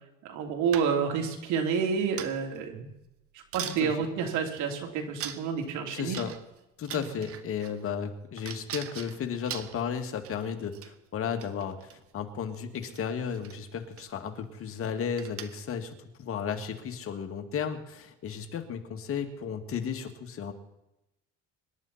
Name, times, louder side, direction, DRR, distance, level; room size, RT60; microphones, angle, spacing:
voice 1, 0.3-2.9 3.5-6.2 6.9-7.0, right 6 dB, 70° right, 3 dB, 3.3 m, -29 dB
sound 1, 0.7-1.2 2.2-2.6 3.1-3.2 3.5-3.8 4.6-4.7 5.2-5.7 6.1-6.6 6.8-7.9 8.4-10.5 10.7-10.9 11.3-12.0 12.8-13.0 13.3-13.6 14.0-14.1 14.4-14.7 15.2-15.7, right 9 dB, 50° right, 1.3 m, -41 dB
voice 2, 5.9-6.3 6.8-20.5, left 7 dB, 45° left, 6 dB, 2.2 m, -34 dB
25.5 x 11.0 x 4.3 m, 0.91 s
cardioid pair, 115°, 31 cm